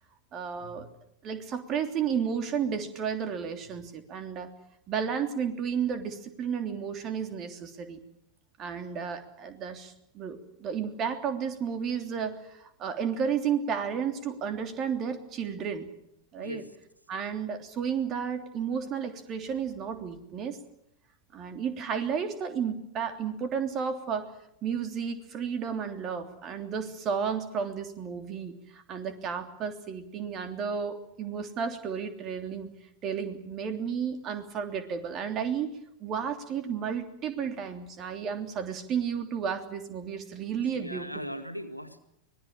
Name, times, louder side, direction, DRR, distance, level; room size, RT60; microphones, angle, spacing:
voice 1, 0.3-0.9 1.2-4.5 4.9-8.0 8.6-15.9 16.3-16.6 17.1-20.6 21.3-24.3 24.6-32.7 33.0-41.1, right 7 dB, 30° right, 7 dB, 3.2 m, -32 dB
voice 2, 16.4-16.7 40.7-42.0, equal, 90° left, 8 dB, 2.0 m, -38 dB
25.0 x 19.5 x 8.8 m, 0.75 s
figure-of-eight pair, 90°, 0 cm